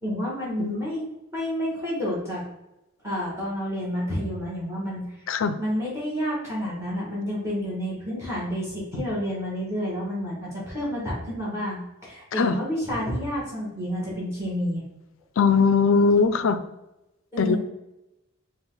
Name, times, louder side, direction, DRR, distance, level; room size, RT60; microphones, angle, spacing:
voice 1, 0.0-1.0 1.3-2.4 3.0-5.0 5.6-14.8 17.3-17.6, equal, 15° right, -6 dB, 1.7 m, -29 dB
voice 2, 15.4-16.6 17.4-17.6, left 5 dB, 65° left, 11 dB, 0.4 m, -20 dB
5.4 x 2.5 x 3.9 m, 0.92 s
head